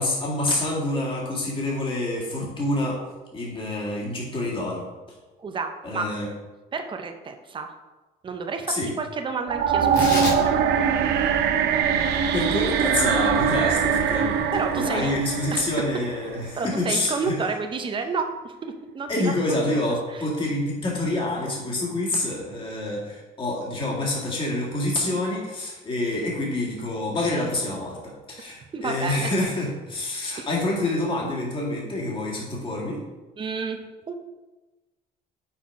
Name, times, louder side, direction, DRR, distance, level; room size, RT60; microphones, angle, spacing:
voice 1, 0.0-3.0 3.3-4.8 5.8-6.3 8.7-8.9 12.3-17.4 19.1-28.0 28.3-33.0, left 2 dB, 30° left, -3 dB, 1.9 m, -27 dB
voice 2, 5.4-6.1 6.7-7.7 8.2-10.8 14.5-15.2 15.5-15.7 16.6-19.6 20.1-20.2 28.7-29.3 30.4-30.5 33.4-34.1, right 4 dB, 30° right, 6 dB, 0.7 m, -31 dB
sound 1, 9.5-16.6, right 7 dB, 75° right, 0.6 m, -23 dB
Tearing, 9.8-16.5, left 1 dB, 80° left, 2.1 m, -35 dB
5.7 x 4.3 x 4.6 m, 1.2 s
cardioid pair, 110°, 17 cm